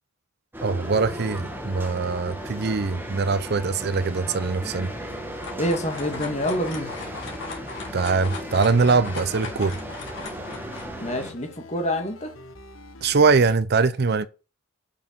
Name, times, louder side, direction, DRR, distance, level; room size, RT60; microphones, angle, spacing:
sound 1, 0.5-11.3, equal, 10° right, 1.5 m, -36 dB
voice 1, 0.6-4.9 7.9-9.8 13.0-14.3, right 4 dB, 55° right, 0.6 m, -22 dB
sound 2, 0.8-13.5, left 2 dB, 90° left, 1.3 m, -45 dB
sound 3, 5.0-10.9, left 4 dB, 65° left, 2.9 m, -38 dB
voice 2, 5.6-7.2 11.0-12.3, equal, 35° left, 2.2 m, -27 dB
6.5 x 6.1 x 7.1 m
head